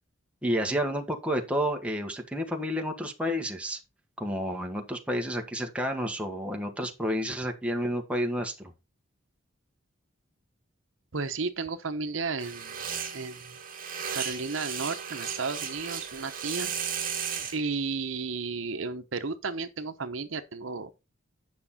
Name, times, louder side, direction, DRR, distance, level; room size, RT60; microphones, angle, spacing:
voice 1, 0.4-3.8 4.2-8.7, equal, 5° right, 1.5 m, -30 dB
voice 2, 11.1-12.9 13.1-13.6 14.1-16.7 17.5-21.0, right 4 dB, 70° right, 0.9 m, -33 dB
sound 1, 12.4-17.6, right 7 dB, 45° right, 2.3 m, -35 dB
9.6 x 5.9 x 4.2 m
head